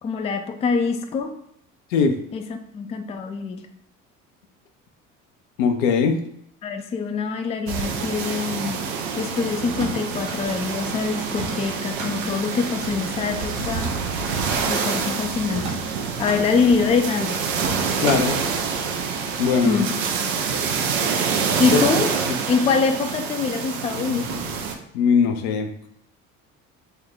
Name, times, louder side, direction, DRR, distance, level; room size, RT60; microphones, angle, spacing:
voice 1, 0.0-1.3 2.3-2.4 2.7-3.6 6.6-8.8 9.2-14.0 14.7-15.7 16.2-17.4 19.6-19.9 21.6-22.1 22.5-24.3, left 5 dB, 20° left, 6 dB, 0.3 m, -24 dB
voice 2, 5.6-6.2 13.5-13.7 18.0-18.4 19.4-19.8 21.7-21.8 22.3-22.4 24.1-24.5 24.9-25.7, left 6 dB, 75° left, 6 dB, 0.6 m, -21 dB
sound 1, 7.7-24.7, right 6 dB, 85° right, 0.5 m, -27 dB
sound 2, 9.6-10.4 11.3-12.1 13.6-14.5 15.5-16.4 17.6-18.4, right 2 dB, 70° right, 1.0 m, -32 dB
3.2 x 2.2 x 3.8 m, 0.72 s
hypercardioid pair, 60°, 39 cm